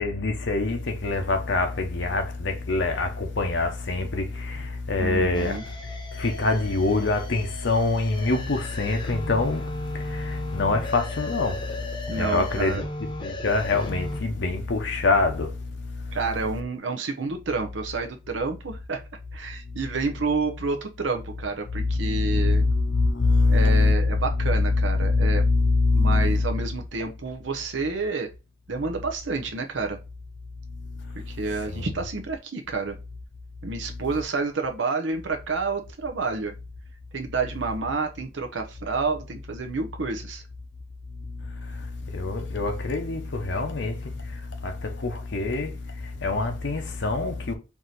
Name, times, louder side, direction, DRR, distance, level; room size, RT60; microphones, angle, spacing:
voice 1, 0.0-5.6 5.8-12.8 13.2-16.2 21.7-26.5 31.7-31.9 41.4-47.5, left 3 dB, 65° left, 0.8 m, -25 dB
voice 2, 5.0-5.6 12.1-12.8 16.1-19.0 19.3-22.6 23.5-25.5 25.9-28.3 28.7-30.0 31.3-33.0 33.6-36.5 37.1-40.4, right 4 dB, 70° right, 0.7 m, -29 dB
sound 1, 5.3-14.2, left 1 dB, 25° left, 0.9 m, -36 dB
4.7 x 2.8 x 3.8 m
head